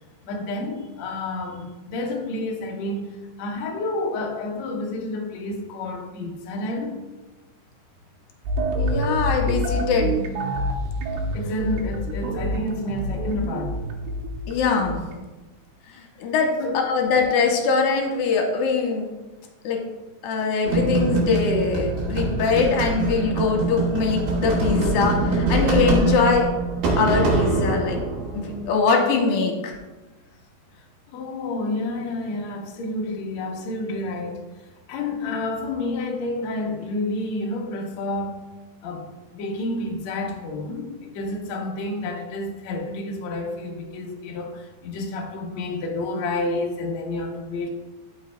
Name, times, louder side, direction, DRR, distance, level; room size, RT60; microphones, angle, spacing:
voice 1, 0.2-7.0 11.3-13.8 16.6-16.8 30.7-34.4 34.9-38.4 38.8-47.7, left 2 dB, 85° left, 0 dB, 1.5 m, -30 dB
sound 1, 8.5-15.2, equal, 90° right, 3.0 m, -27 dB
voice 2, 8.8-10.2 14.5-15.0 15.9-16.5 16.9-19.1 19.6-19.8 20.2-26.5 27.0-28.0 28.3-29.8, left 5 dB, 70° left, 1 dB, 2.4 m, -22 dB
sound 2, 20.6-28.7, right 3 dB, 70° right, 3.1 m, -24 dB
12.5 x 6.1 x 2.3 m, 1.2 s
omnidirectional pair, 4.7 m